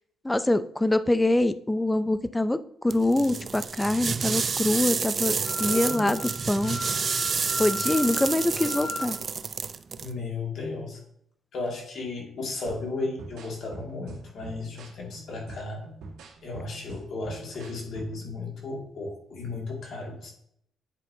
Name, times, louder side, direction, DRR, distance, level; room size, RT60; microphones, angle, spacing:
voice 1, 0.2-6.8 7.6-9.2, left 1 dB, 10° left, 13 dB, 0.5 m, -25 dB
sound 1, 2.9-10.1, right 5 dB, 40° right, 0.4 m, -29 dB
Wind instrument woodwind instrument, 5.4-9.1, left 2 dB, 45° left, 1.3 m, -37 dB
voice 2, 5.6-6.2 10.0-11.0 11.5-15.8 16.4-20.3, left 3 dB, 65° left, -1 dB, 2.2 m, -34 dB
sound 2, 12.7-18.3, right 3 dB, 85° right, 1.5 m, -45 dB
9.7 x 5.2 x 2.8 m, 0.69 s
cardioid pair, 90°, 0 cm